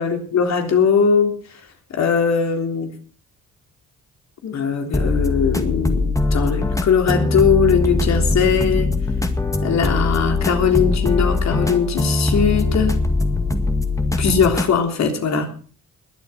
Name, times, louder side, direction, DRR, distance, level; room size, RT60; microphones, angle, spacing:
voice 1, 0.0-1.4 1.9-2.9 4.4-8.9 9.6-12.9 14.2-15.5, left 6 dB, 65° left, 4 dB, 3.5 m, -20 dB
sound 1, 4.9-14.7, left 2 dB, 10° left, 2.0 m, -21 dB
21.0 x 8.1 x 5.8 m, 0.42 s
cardioid pair, 90°, 30 cm